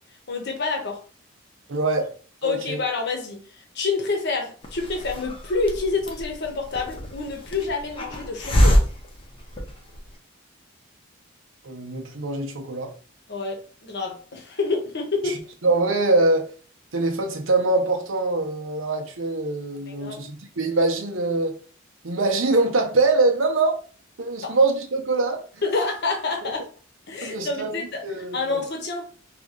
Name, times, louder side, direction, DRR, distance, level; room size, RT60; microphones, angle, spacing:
voice 1, 0.3-1.0 2.4-8.8 13.3-15.4 19.9-20.2 24.4-24.6 25.6-26.7 27.1-28.0 28.3-29.1, left 4 dB, 60° left, 0.9 m, -28 dB
voice 2, 1.7-2.1 2.4-2.8 11.6-12.9 15.2-16.5 16.9-21.6 22.0-23.8 24.2-25.6 26.4-26.5 27.2-27.7 28.0-28.6, right 2 dB, 75° right, 0.7 m, -23 dB
Hiss, 4.6-10.1, equal, 25° left, 0.7 m, -25 dB
2.9 x 2.5 x 3.6 m
head